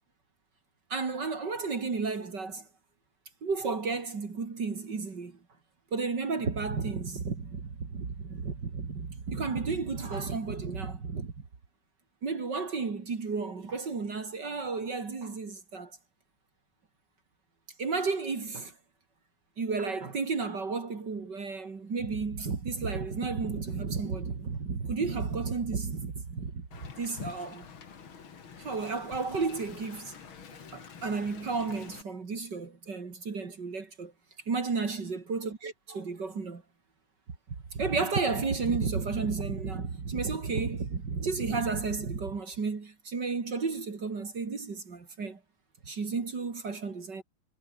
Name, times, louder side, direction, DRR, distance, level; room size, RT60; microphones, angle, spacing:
voice 1, 0.9-2.7 3.4-5.4 5.9-11.3 12.2-16.0 17.8-18.7 19.6-26.7 27.0-27.7 28.6-30.1 30.7-34.1 34.5-36.6 37.7-45.4 45.9-47.2, right 4 dB, 55° right, 3.4 m, -32 dB
Wind, 26.7-32.0, left 6 dB, 70° left, 3.1 m, -46 dB
omnidirectional pair, 2.3 m